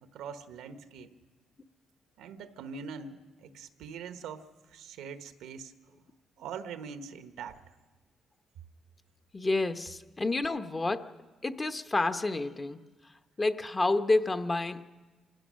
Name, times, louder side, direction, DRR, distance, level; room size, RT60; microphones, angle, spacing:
voice 1, 0.0-1.1 2.2-5.7 6.4-7.6, right 6 dB, 90° right, 9 dB, 1.1 m, -43 dB
voice 2, 9.3-11.1 11.4-12.8 13.4-14.9, left 2 dB, 25° left, 10 dB, 0.9 m, -29 dB
26.0 x 15.5 x 6.3 m, 1.3 s
cardioid pair, 90°, 0 cm